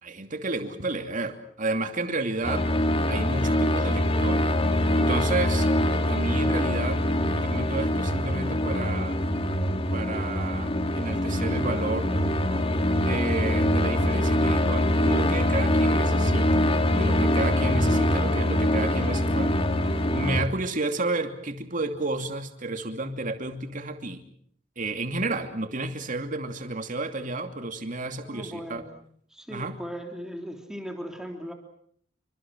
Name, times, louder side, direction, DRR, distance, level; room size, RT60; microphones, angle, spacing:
voice 1, 0.0-2.7 3.1-4.4 4.9-5.7 6.1-9.2 9.9-12.4 12.9-16.6 16.9-24.2 24.8-28.8 29.5-29.7, right 2 dB, 45° right, 7 dB, 2.7 m, -31 dB
sound 1, 2.4-20.5, left 1 dB, 30° left, 1.8 m, -24 dB
voice 2, 28.3-28.9 29.3-31.5, equal, 5° right, 3 dB, 3.2 m, -38 dB
28.5 x 25.5 x 6.3 m, 0.63 s
head